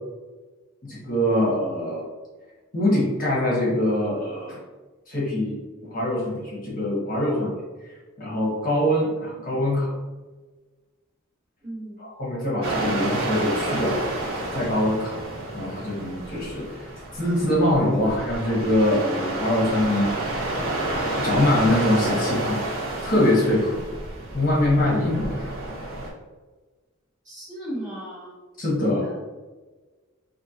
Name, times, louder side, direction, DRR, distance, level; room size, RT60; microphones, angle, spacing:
voice 1, 0.8-2.0 2.7-4.6 5.1-5.6 5.9-9.9 12.0-14.2 14.5-15.2 15.5-16.9 17.1-20.5 21.2-22.6 23.0-23.8 24.3-25.5 28.6-29.1, left 1 dB, 40° left, -5 dB, 1.2 m, -23 dB
voice 2, 11.6-12.0 20.6-20.7 27.2-28.4 29.0-29.2, right 1 dB, 35° right, -6 dB, 1.3 m, -36 dB
sound 1, 12.6-26.1, right 2 dB, 60° right, 1.0 m, -30 dB
4.3 x 2.7 x 2.8 m, 1.3 s
head